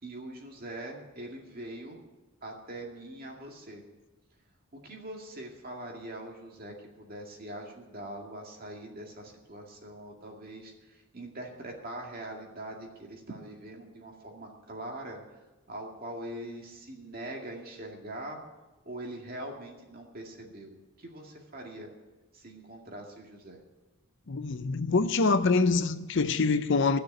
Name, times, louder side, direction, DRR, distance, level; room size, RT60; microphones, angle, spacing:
voice 1, 0.0-2.0 2.4-3.8 4.7-15.2 15.7-18.4 18.8-21.9 22.3-23.6, right 1 dB, 40° right, 2.2 m, -42 dB
voice 2, 24.3-27.0, left 4 dB, 55° left, 0.6 m, -25 dB
15.0 x 6.6 x 9.6 m
head